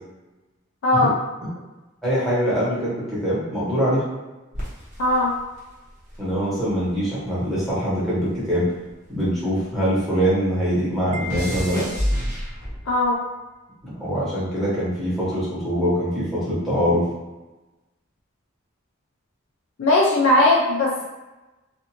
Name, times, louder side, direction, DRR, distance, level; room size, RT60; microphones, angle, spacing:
voice 1, 0.8-1.1 5.0-5.3 12.9-13.2 19.8-21.0, left 1 dB, 70° left, -3 dB, 0.4 m, -18 dB
voice 2, 2.0-4.0 6.2-8.7 9.1-11.9 13.9-17.1, equal, ahead, -11 dB, 1.1 m, -23 dB
sound 1, 4.5-7.0 7.3-10.0 10.2-13.0 13.8-14.2, equal, 40° right, 0.9 m, -30 dB
Wind chime, 11.1-12.5, left 1 dB, 80° right, 0.4 m, -37 dB
2.5 x 2.5 x 2.8 m, 1.1 s
head